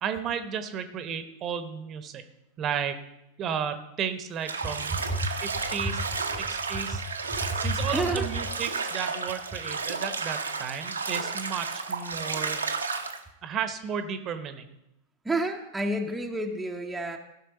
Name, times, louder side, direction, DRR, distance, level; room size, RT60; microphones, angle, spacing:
voice 1, 0.0-2.2 2.6-3.0 3.4-5.0 5.4-6.0 6.5-7.0 7.6-12.6 13.4-14.8, right 7 dB, 30° right, 9 dB, 1.0 m, -33 dB
Bathtub (filling or washing), 4.4-13.2, right 4 dB, 75° right, 1.0 m, -32 dB
voice 2, 4.9-5.3 7.3-8.3 15.2-17.2, right 1 dB, 5° right, 1 dB, 0.9 m, -29 dB
16.0 x 6.1 x 4.2 m, 0.86 s
figure-of-eight pair, 90°, 0 cm